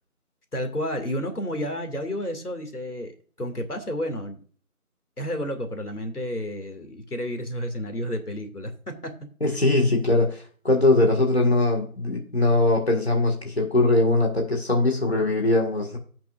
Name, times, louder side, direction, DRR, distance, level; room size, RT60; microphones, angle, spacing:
voice 1, 0.5-4.4 5.2-9.1 9.4-9.6, equal, 85° left, 5 dB, 2.6 m, -31 dB
voice 2, 9.4-16.0, left 2 dB, 45° left, 0 dB, 2.0 m, -21 dB
16.5 x 6.0 x 2.6 m, 0.43 s
figure-of-eight pair, 180°, 44 cm